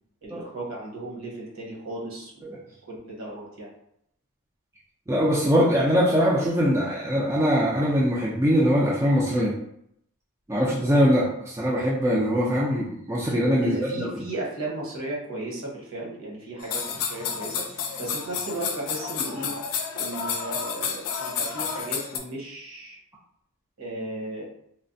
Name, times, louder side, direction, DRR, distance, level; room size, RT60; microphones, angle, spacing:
voice 1, 0.2-2.4 2.9-3.7 10.5-10.7 13.6-19.5 19.9-23.0 23.8-24.5, right 1 dB, 65° right, -3 dB, 1.0 m, -35 dB
voice 2, 5.1-9.5 10.5-14.1, equal, 15° right, -6 dB, 0.3 m, -22 dB
sound 1, 16.6-22.2, left 6 dB, 85° left, 0.4 m, -30 dB
3.2 x 2.1 x 2.6 m, 0.73 s
head